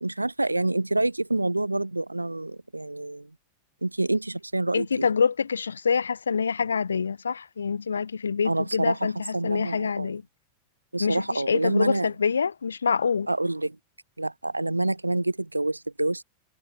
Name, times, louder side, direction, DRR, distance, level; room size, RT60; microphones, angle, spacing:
voice 1, 0.0-3.3 3.8-5.1 8.4-10.1 10.9-12.1 13.3-13.8 14.2-16.2, right 2 dB, 85° right, 0.8 m, -27 dB
voice 2, 4.7-10.2 11.0-13.3, left 6 dB, 75° left, 0.8 m, -26 dB
figure-of-eight pair, 90°, 0 cm